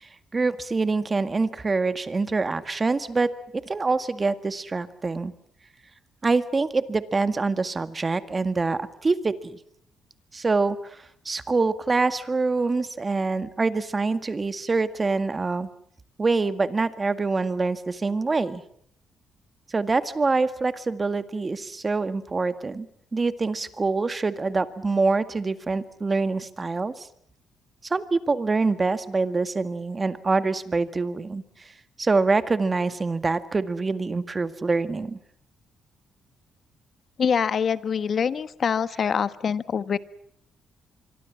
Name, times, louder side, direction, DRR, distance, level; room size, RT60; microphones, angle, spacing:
voice 1, 0.0-5.3 6.2-9.6 10.3-15.7 16.2-18.6 19.7-22.9 23.1-27.1 27.9-31.4 32.0-35.2 38.9-39.0, right 3 dB, 30° right, 11 dB, 1.9 m, -25 dB
voice 2, 37.2-40.0, left 7 dB, 50° left, 14 dB, 1.3 m, -25 dB
25.5 x 23.5 x 7.4 m, 0.65 s
cardioid pair, 90°, 0 cm